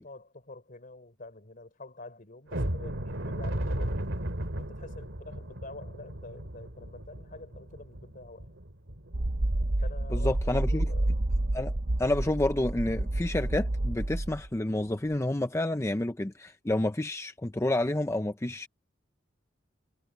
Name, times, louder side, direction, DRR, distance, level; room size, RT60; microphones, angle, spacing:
voice 1, 0.0-4.1 4.6-8.5 9.8-11.2, left 2 dB, 45° left, 4.1 m, -47 dB
sound 1, 2.5-9.2 9.6-9.7 10.2-10.3 10.8-11.0, right 1 dB, 75° right, 2.8 m, -35 dB
sound 2, 9.1-14.5, right 1 dB, 50° right, 0.9 m, -29 dB
voice 2, 10.1-10.9 11.5-11.7 12.0-18.7, left 1 dB, 15° left, 0.6 m, -29 dB
head